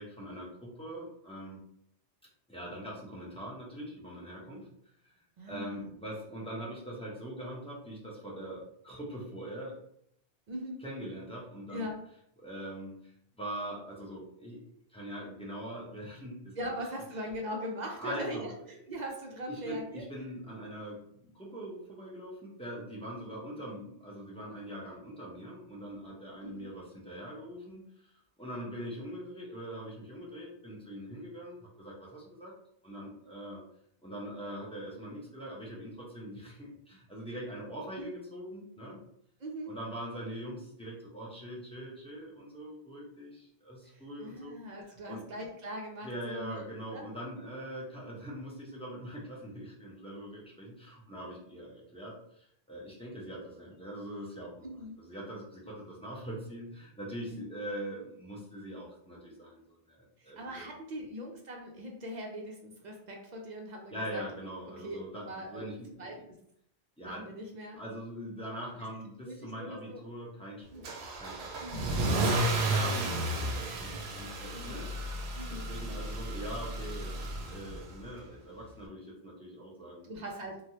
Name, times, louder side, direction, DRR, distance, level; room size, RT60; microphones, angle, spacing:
voice 1, 0.0-1.6 2.5-4.7 5.0-5.1 5.5-9.8 10.8-11.9 12.4-13.0 13.3-14.6 14.9-16.8 18.0-18.5 19.5-27.8 28.4-32.5 32.8-33.6 34.0-39.0 39.7-44.6 45.1-45.2 46.0-60.7 63.9-66.2 67.0-67.2 67.8-70.9 71.2-71.6 72.2-74.9 75.2-80.1, right 1 dB, 5° left, -6 dB, 0.7 m, -42 dB
voice 2, 5.4-5.9 10.5-10.8 11.7-12.0 16.6-18.5 18.9-20.0 23.1-23.3 26.4-26.7 38.0-38.1 39.4-39.8 43.8-46.6 46.9-47.0 54.6-55.0 57.3-57.4 60.2-64.2 64.8-65.0 65.3-65.7 66.0-66.2 67.0-67.8 69.3-70.0 70.7-70.8 71.6-71.9 74.5-74.9 75.4-75.7 80.1-80.7, equal, 55° right, 1 dB, 0.6 m, -41 dB
Car / Engine starting / Accelerating revving vroom, 70.8-78.0, right 1 dB, 85° right, 0.8 m, -33 dB
3.2 x 2.3 x 2.7 m, 0.71 s
omnidirectional pair, 1.0 m